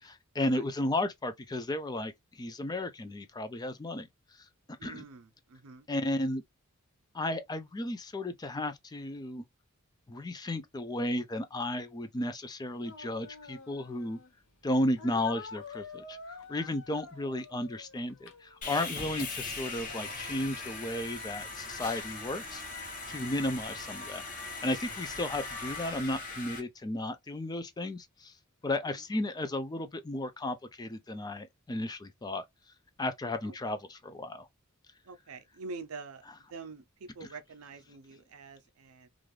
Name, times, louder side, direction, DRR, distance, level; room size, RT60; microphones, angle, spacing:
voice 1, 0.0-4.1 4.8-5.0 5.9-6.4 7.1-9.4 10.1-14.2 14.6-22.6 23.1-28.3 28.6-32.4 33.0-34.5, left 1 dB, 20° left, 0.4 m, -34 dB
voice 2, 4.8-5.9 28.8-29.0 33.4-33.8 35.0-39.1, right 4 dB, 85° right, 0.5 m, -46 dB
Speech, 12.8-14.3 15.0-19.0, left 4 dB, 65° left, 0.7 m, -48 dB
Sawing, 18.6-26.6, left 3 dB, 40° left, 1.0 m, -40 dB
2.5 x 2.3 x 3.1 m
head